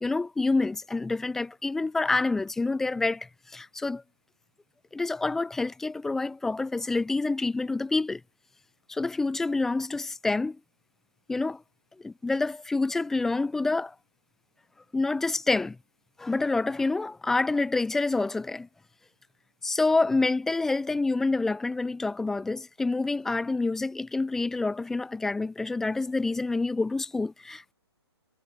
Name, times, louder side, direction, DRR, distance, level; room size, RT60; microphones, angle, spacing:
voice 1, 0.0-4.0 4.9-8.2 8.9-10.6 11.3-11.6 12.0-13.9 14.9-15.8 16.2-18.7 19.6-27.7, left 3 dB, 5° left, 0.3 m, -27 dB
figure-of-eight pair, 135°, 14 cm